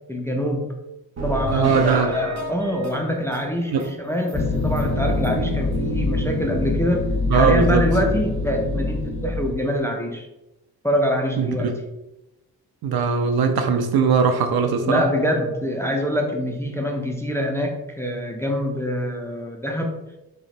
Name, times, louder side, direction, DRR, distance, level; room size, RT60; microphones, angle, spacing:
voice 1, 0.1-0.8 1.2-10.3 10.8-11.7 14.8-20.0, equal, 5° left, 2 dB, 0.4 m, -25 dB
sound 1, 1.2-3.9 4.3-4.4 4.8-4.9 5.2-5.3, equal, 35° right, 0.9 m, -31 dB
voice 2, 1.5-2.1 3.7-3.9 7.3-7.8 11.4-11.8 12.8-15.0, right 5 dB, 55° right, 7 dB, 0.5 m, -20 dB
sound 2, 4.3-9.5, left 2 dB, 30° left, 0.8 m, -24 dB
3.8 x 2.1 x 2.4 m, 0.93 s
supercardioid pair, 45°, 47 cm